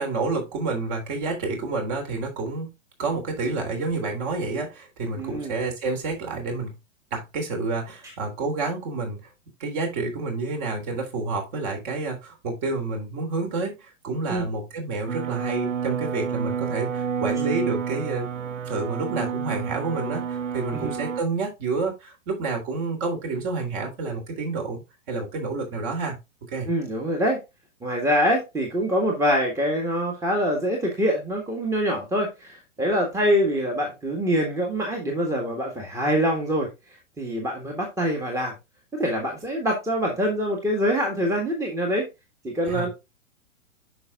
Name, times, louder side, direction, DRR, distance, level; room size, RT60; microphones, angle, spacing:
voice 1, 0.0-2.7 3.0-6.7 7.1-9.3 9.6-18.3 18.7-24.8 25.1-26.2 26.5-26.7 42.7-42.9, right 3 dB, 40° right, 3.3 m, -29 dB
voice 2, 5.2-5.6 8.0-8.1 14.3-14.5 20.7-20.9 26.7-27.4 27.8-36.7 37.2-38.5 38.9-42.1 42.4-42.9, equal, 10° right, 1.7 m, -24 dB
sound 1, 15.1-21.2, right 7 dB, 75° right, 0.7 m, -30 dB
8.7 x 5.9 x 2.5 m
figure-of-eight pair, 110°, 39 cm